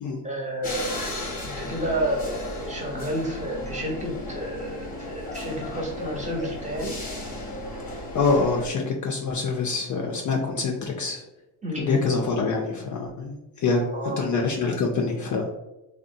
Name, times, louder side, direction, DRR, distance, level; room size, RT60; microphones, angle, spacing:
voice 1, 0.2-1.1 1.4-6.9 11.6-12.1 13.8-14.2, right 1 dB, 15° right, -1 dB, 0.8 m, -30 dB
sound 1, 0.6-8.7, left 2 dB, 20° left, 0.8 m, -35 dB
voice 2, 8.1-11.2 11.8-13.8 14.2-15.4, left 4 dB, 40° left, 1 dB, 0.4 m, -25 dB
2.7 x 2.1 x 2.6 m, 0.98 s
hypercardioid pair, 65°, 48 cm